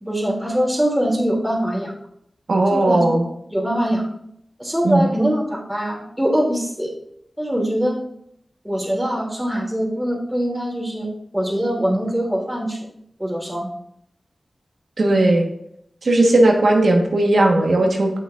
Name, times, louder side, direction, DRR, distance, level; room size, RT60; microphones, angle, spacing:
voice 1, 0.0-1.9 2.7-4.1 4.6-6.9 7.4-8.0 8.6-12.8 13.2-13.7, equal, 10° right, -3 dB, 2.7 m, -23 dB
voice 2, 2.5-3.2 4.8-5.0 15.0-15.5 16.0-18.1, right 2 dB, 75° right, 2 dB, 1.2 m, -16 dB
8.0 x 6.4 x 2.5 m, 0.73 s
cardioid pair, 40°, 0 cm